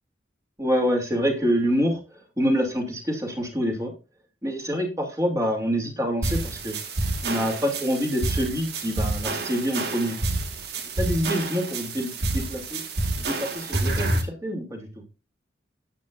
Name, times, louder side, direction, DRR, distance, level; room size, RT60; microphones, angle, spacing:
voice 1, 0.6-2.0 2.4-3.9 4.4-6.8 7.2-10.2 11.0-12.8 13.2-14.9, equal, 20° right, 2 dB, 2.6 m, -26 dB
sound 1, 6.2-14.2, right 2 dB, 60° right, 1.8 m, -28 dB
12.5 x 8.6 x 2.5 m, 0.29 s
head